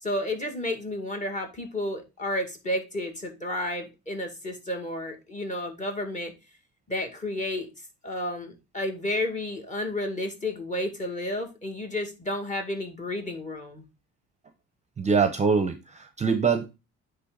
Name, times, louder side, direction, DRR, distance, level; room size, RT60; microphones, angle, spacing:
voice 1, 0.0-6.3 6.9-7.7 8.0-13.8, left 1 dB, 25° left, 3 dB, 2.1 m, -31 dB
voice 2, 15.0-16.8, right 5 dB, 25° right, 9 dB, 0.7 m, -24 dB
9.6 x 3.4 x 3.9 m, 0.26 s
cardioid pair, 115°, 29 cm